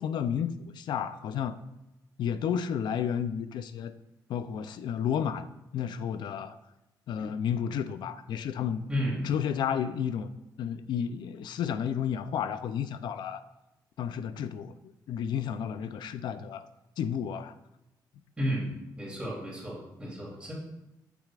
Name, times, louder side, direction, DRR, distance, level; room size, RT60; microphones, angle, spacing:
voice 1, 0.0-1.6 2.2-3.9 4.3-5.5 5.7-6.5 7.1-8.8 9.2-10.3 10.6-13.4 14.0-16.6 17.0-17.5, left 8 dB, 75° left, 11 dB, 0.5 m, -32 dB
voice 2, 8.9-9.3 18.4-18.7 19.0-20.5, equal, 15° right, -5 dB, 3.2 m, -32 dB
9.0 x 8.4 x 2.5 m, 0.94 s
wide cardioid pair, 155°, 8 cm